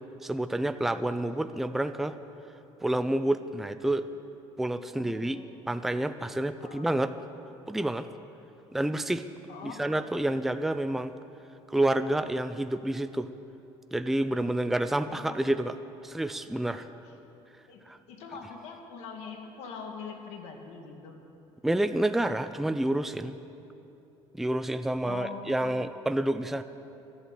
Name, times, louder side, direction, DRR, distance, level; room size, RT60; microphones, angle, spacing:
voice 1, 0.2-2.2 2.8-4.1 4.6-5.4 5.7-7.1 7.7-8.1 8.7-9.3 9.6-11.1 11.7-13.3 13.9-15.8 16.0-16.9 17.9-18.0 21.6-23.3 24.3-26.6, right 1 dB, 5° right, 10 dB, 0.4 m, -28 dB
voice 2, 4.9-5.9 6.6-7.0 9.5-9.8 15.0-15.5 17.0-17.1 17.7-21.2 25.0-26.0, left 5 dB, 75° left, 3 dB, 2.2 m, -43 dB
14.0 x 11.5 x 8.2 m, 3.0 s
cardioid pair, 130°, 11 cm